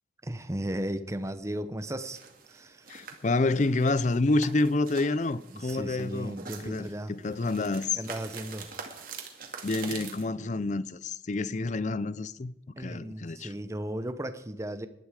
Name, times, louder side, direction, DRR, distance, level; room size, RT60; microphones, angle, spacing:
voice 1, 0.2-2.2 2.5-2.8 5.5-7.1 8.0-8.7 12.8-14.9, right 1 dB, 15° right, 0.7 m, -35 dB
sound 1, 2.1-10.2, right 5 dB, 50° right, 2.3 m, -45 dB
voice 2, 2.9-6.4 6.6-8.0 9.6-13.5, left 2 dB, 40° left, 0.5 m, -28 dB
18.5 x 11.5 x 4.9 m
head